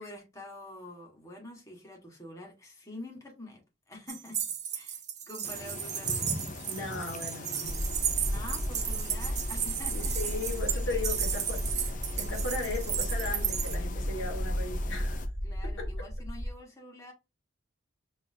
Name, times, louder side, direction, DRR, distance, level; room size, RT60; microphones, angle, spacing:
voice 1, 0.0-3.6 3.9-4.4 4.7-5.0 5.3-6.3 7.4-10.1 10.6-11.0 15.4-17.1, left 1 dB, 15° left, 1.5 m, -46 dB
sound 1, 4.1-13.8, right 9 dB, 35° right, 0.7 m, -34 dB
sound 2, 5.4-15.3, left 3 dB, 40° left, 0.7 m, -43 dB
voice 2, 6.7-7.8 9.9-15.2 15.6-15.9, left 3 dB, 70° left, 1.6 m, -37 dB
sound 3, 7.6-16.5, equal, 20° right, 1.3 m, -34 dB
5.4 x 3.0 x 2.7 m
head